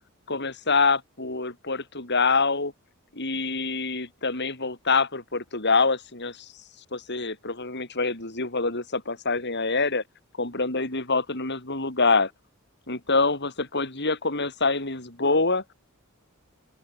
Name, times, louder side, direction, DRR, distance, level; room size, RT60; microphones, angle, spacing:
voice 1, 0.3-2.7 3.1-6.5 6.9-10.0 10.4-12.3 12.9-15.6, left 4 dB, 55° left, 6.6 m, -25 dB
open air
head